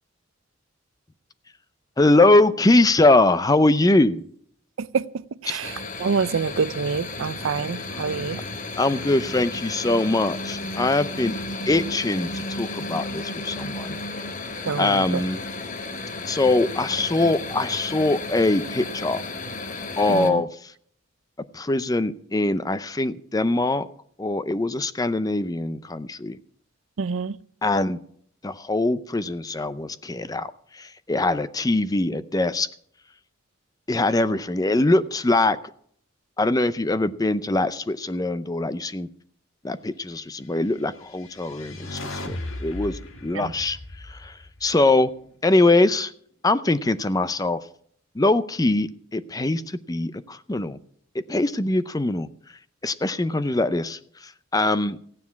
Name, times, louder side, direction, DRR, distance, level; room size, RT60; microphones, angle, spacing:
voice 1, 2.0-4.3 5.5-5.6 8.8-11.3 11.7-14.0 14.8-15.4 16.2-19.2 20.0-20.7 21.5-23.9 24.2-26.4 27.6-28.0 28.4-32.7 33.9-35.6 36.4-39.1 39.6-45.1 45.4-46.1 46.4-47.7 48.1-50.8 51.1-52.3 52.8-55.0, left 2 dB, 20° left, 0.5 m, -22 dB
voice 2, 5.4-5.7 6.0-8.4 14.7-15.0 20.1-20.4 27.0-27.4 43.4-43.5, right 5 dB, 80° right, 0.5 m, -26 dB
sound 1, 5.6-20.3, left 2 dB, 40° left, 1.1 m, -33 dB
sound 2, 40.9-45.2, left 2 dB, 85° left, 1.9 m, -37 dB
15.0 x 9.6 x 5.8 m
head